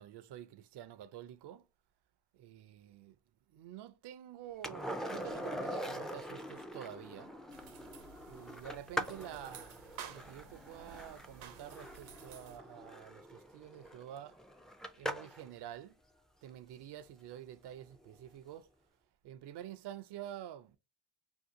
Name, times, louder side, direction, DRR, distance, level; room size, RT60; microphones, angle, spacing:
voice 1, 0.0-1.7 2.3-3.2 3.5-7.4 8.3-14.4 15.0-16.0 16.4-18.7 19.2-20.8, right 11 dB, 55° right, 0.5 m, -48 dB
Skateboard, 4.6-15.5 18.1-18.2, equal, ahead, 0.3 m, -43 dB
sound 1, 7.5-12.6, right 8 dB, 80° right, 0.8 m, -53 dB
2.8 x 2.4 x 3.6 m
supercardioid pair, 60°, 49 cm